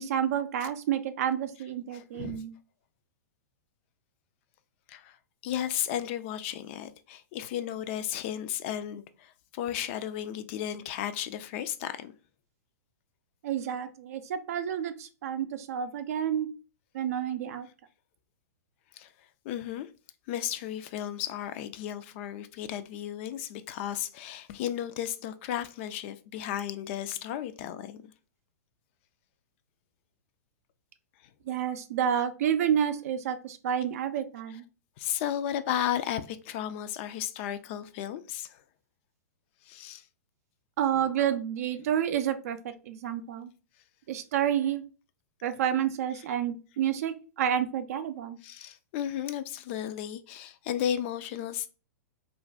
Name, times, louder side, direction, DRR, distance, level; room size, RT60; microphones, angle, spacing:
voice 1, 0.0-2.5 13.4-16.5 16.9-17.7 31.5-34.6 40.8-43.5 44.1-44.9 45.4-48.4, right 9 dB, 60° right, 0.4 m, -29 dB
voice 2, 1.9-2.4 4.9-5.2 5.4-12.1 18.9-19.1 19.5-19.9 20.3-28.1 35.0-38.6 39.7-40.0 40.9-41.0 48.4-51.7, left 10 dB, 45° left, 0.3 m, -34 dB
2.5 x 2.2 x 3.2 m
hypercardioid pair, 115°, 9 cm